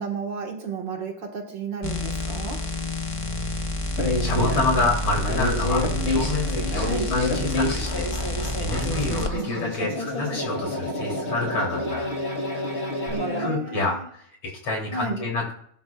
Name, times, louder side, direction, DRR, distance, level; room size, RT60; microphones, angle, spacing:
voice 1, 0.0-2.7 6.8-7.1 9.1-9.5 13.1-14.1 14.9-15.2, right 4 dB, 60° right, 2.3 m, -33 dB
sound 1, 1.8-9.3 13.1-13.2, left 1 dB, 50° left, 0.3 m, -28 dB
voice 2, 3.9-12.1 13.4-15.5, left 2 dB, 85° left, 4.3 m, -28 dB
sound 2, 4.0-13.5, left 1 dB, 30° left, 3.4 m, -28 dB
19.5 x 12.0 x 2.4 m
omnidirectional pair, 2.3 m